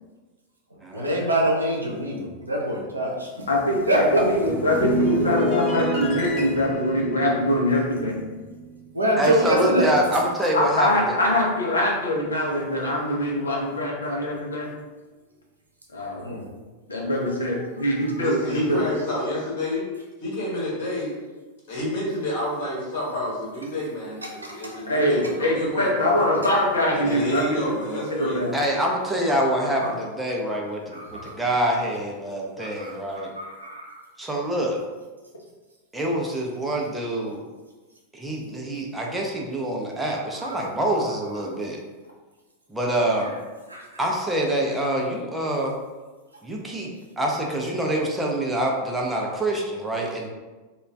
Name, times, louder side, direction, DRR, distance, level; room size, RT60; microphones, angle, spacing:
voice 1, 0.9-3.3 3.9-4.3 8.9-9.9 16.2-16.5 17.6-17.7 18.0-18.8 24.4-24.8 30.9-31.3 31.6-31.8 32.6-34.0 40.4-40.6 43.1-43.3 43.7-43.8, equal, 80° right, -1 dB, 0.5 m, -26 dB
voice 2, 3.5-8.2 9.7-9.8 10.5-14.7 15.9-16.3 16.9-18.9 24.9-27.6 28.1-28.5 29.8-29.9, left 1 dB, 75° left, -2 dB, 0.6 m, -23 dB
sound 1, 4.2-8.8 9.1-9.4, equal, 25° left, 1.4 m, -28 dB
voice 3, 9.2-10.9 28.5-33.3 34.2-34.8 35.9-37.4 38.1-41.8 42.7-43.3 44.0-45.7 46.4-46.9 47.2-50.3, right 1 dB, 5° right, -1 dB, 0.5 m, -25 dB
voice 4, 18.2-19.8 20.2-21.2 21.7-26.1 26.9-28.4, left 1 dB, 55° left, -5 dB, 1.0 m, -29 dB
2.3 x 2.3 x 3.2 m, 1.2 s
figure-of-eight pair, 90°, 0 cm